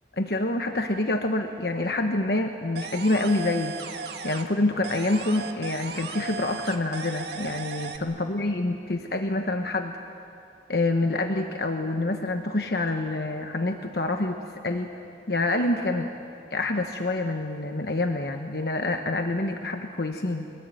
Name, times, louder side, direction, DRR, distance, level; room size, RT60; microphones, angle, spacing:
voice 1, 0.2-3.8 4.2-9.9 10.7-14.9 15.3-16.1 16.5-20.5, left 2 dB, 65° left, 5 dB, 1.2 m, -27 dB
sound 1, 2.8-4.6 4.8-8.0, right 4 dB, 75° right, 1.8 m, -36 dB
24.0 x 21.5 x 9.3 m, 2.5 s
head